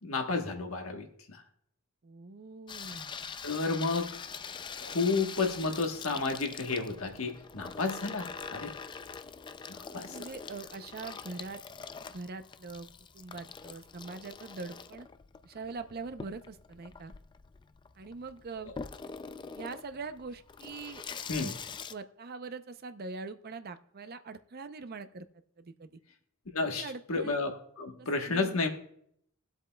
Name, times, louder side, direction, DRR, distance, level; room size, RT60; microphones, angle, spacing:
voice 1, 0.0-1.4 3.4-4.2 4.8-8.7 9.7-10.2 21.3-21.5 26.5-28.7, left 3 dB, 70° left, 4 dB, 1.2 m, -32 dB
voice 2, 2.0-3.1 10.0-11.6 12.1-12.9 13.1-15.1 15.4-17.1 18.0-18.7 19.5-21.0 21.3-21.6 21.9-25.3 25.6-25.9 26.6-27.4 28.0-28.6, right 4 dB, 45° right, 10 dB, 0.6 m, -43 dB
Water tap faucet / Sink (filling or washing), 2.7-21.9, left 5 dB, 20° left, 0.3 m, -44 dB
21.0 x 8.0 x 2.3 m, 0.69 s
head